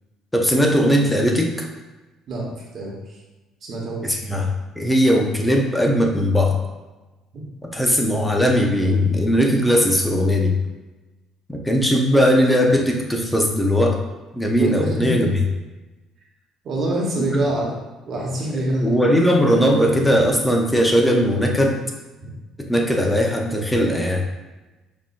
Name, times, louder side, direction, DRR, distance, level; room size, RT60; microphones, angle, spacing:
voice 1, 0.3-1.7 4.0-6.6 7.6-10.6 11.5-14.0 14.3-15.3 18.8-21.8 22.6-24.2, equal, 5° left, 1 dB, 0.6 m, -19 dB
voice 2, 3.7-4.2 7.3-7.4 14.6-15.3 16.6-17.7 18.1-18.9, right 1 dB, 50° right, -2 dB, 1.1 m, -25 dB
5.3 x 2.6 x 2.5 m, 1.1 s
cardioid pair, 105°, 0 cm